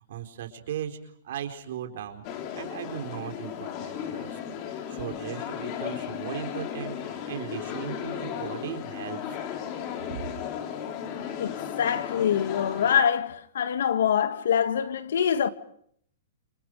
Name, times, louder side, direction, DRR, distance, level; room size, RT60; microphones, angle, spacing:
voice 1, 0.1-1.0 1.2-2.2 2.5-4.4 4.7-9.4 10.1-10.2, right 10 dB, 65° right, 4.4 m, -37 dB
sound 1, 2.2-13.0, left 9 dB, 35° left, 3.6 m, -35 dB
voice 2, 11.4-15.5, left 8 dB, 80° left, 1.8 m, -25 dB
30.0 x 27.0 x 4.9 m
hypercardioid pair, 155°, 0 cm